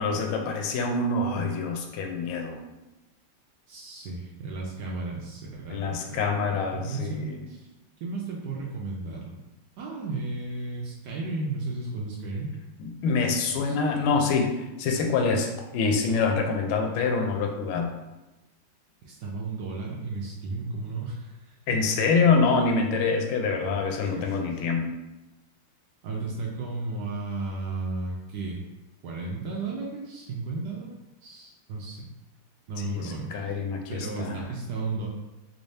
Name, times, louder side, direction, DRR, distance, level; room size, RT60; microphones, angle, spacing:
voice 1, 0.0-2.6 5.7-7.4 12.8-17.9 21.7-24.9 32.8-34.5, left 4 dB, 85° left, 3 dB, 1.5 m, -26 dB
voice 2, 3.7-6.3 6.7-7.7 8.0-9.4 9.8-12.5 13.5-14.1 19.0-21.6 23.6-23.8 24.1-24.6 26.0-28.6 29.0-30.9 31.2-32.1 32.7-33.6 33.9-35.1, right 3 dB, 80° right, -2 dB, 0.9 m, -34 dB
3.4 x 3.2 x 2.7 m, 1.0 s
omnidirectional pair, 2.3 m